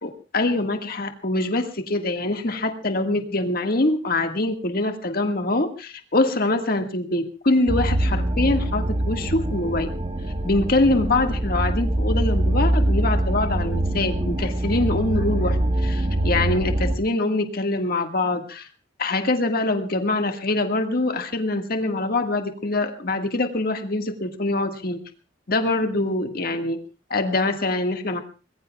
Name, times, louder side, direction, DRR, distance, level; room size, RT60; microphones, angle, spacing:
voice 1, 0.0-9.9 10.4-18.7 19.0-25.0 25.5-26.8 27.1-28.2, left 2 dB, 50° left, 5 dB, 1.7 m, -24 dB
sound 1, 7.7-17.0, right 1 dB, 30° right, 1.3 m, -23 dB
25.5 x 20.5 x 2.3 m, 0.34 s
head